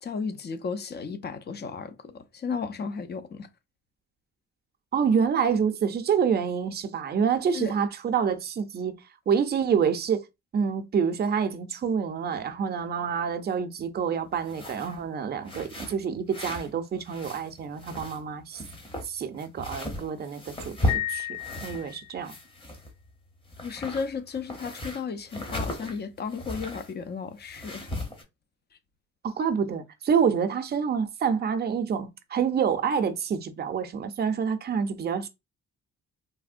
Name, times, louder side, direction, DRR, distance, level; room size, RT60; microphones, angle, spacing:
voice 1, 0.0-3.5 7.5-7.8 23.6-28.0, left 5 dB, 35° left, 0.5 m, -34 dB
voice 2, 4.9-8.9 9.3-10.2 10.5-18.6 19.0-21.3 21.6-22.3 29.2-35.3, right 7 dB, 35° right, 0.5 m, -27 dB
sound 1, 14.4-15.0 15.4-16.7 17.0-18.3 18.5-22.0 22.2-23.1 23.4-26.9 27.4-28.2, left 1 dB, 15° left, 0.8 m, -36 dB
Piano, 20.9-22.3, left 14 dB, 55° left, 2.0 m, -33 dB
3.3 x 2.1 x 2.5 m
cardioid pair, 90°, 30 cm